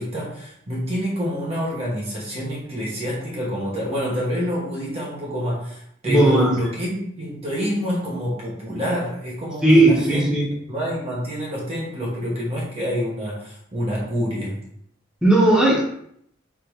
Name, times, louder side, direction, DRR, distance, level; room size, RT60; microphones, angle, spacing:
voice 1, 0.0-10.3 10.7-14.6, equal, 30° right, -5 dB, 1.1 m, -27 dB
voice 2, 6.1-6.5 9.6-10.5 15.2-15.8, right 1 dB, 5° right, -5 dB, 1.3 m, -16 dB
3.5 x 3.3 x 4.6 m, 0.69 s
head